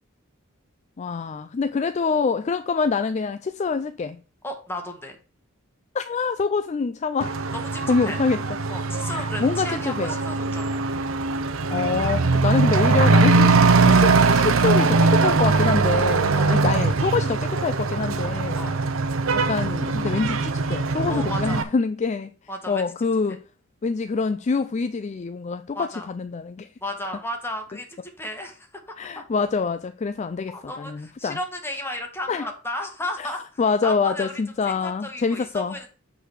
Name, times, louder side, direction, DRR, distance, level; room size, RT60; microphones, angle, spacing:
voice 1, 1.0-4.2 5.9-7.4 7.9-8.4 9.1-10.2 11.7-18.7 19.3-22.3 22.7-23.4 23.8-26.7 29.0-31.4 32.3-32.5 33.2-33.3 33.6-35.8, left 4 dB, 35° left, 0.4 m, -25 dB
voice 2, 4.4-5.2 7.5-8.2 8.7-10.8 13.8-14.0 16.3-16.7 18.5-18.8 21.1-21.7 22.5-22.8 25.7-26.1 26.8-29.2 30.5-34.3 34.6-35.9, left 1 dB, 10° left, 1.6 m, -34 dB
Truck / Accelerating revving vroom, 7.2-21.6, right 3 dB, 75° right, 0.7 m, -21 dB
7.9 x 4.0 x 6.3 m
head